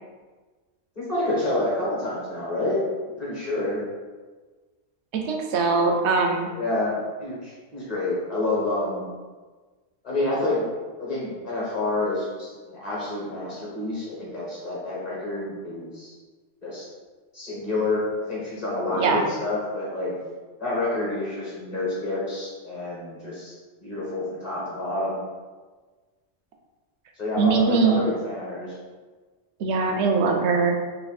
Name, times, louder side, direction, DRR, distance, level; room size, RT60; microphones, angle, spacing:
voice 1, 0.9-2.8 3.2-3.8 5.7-5.9 6.5-9.1 10.0-10.6 11.0-16.1 16.6-16.9 17.3-18.0 18.3-20.1 20.6-23.5 23.8-25.2 27.2-28.7, left 2 dB, 35° left, -7 dB, 1.4 m, -28 dB
voice 2, 5.2-6.5 18.9-19.2 27.4-28.0 29.6-30.8, right 4 dB, 80° right, 3 dB, 0.9 m, -21 dB
3.3 x 2.6 x 4.0 m, 1.3 s
omnidirectional pair, 1.1 m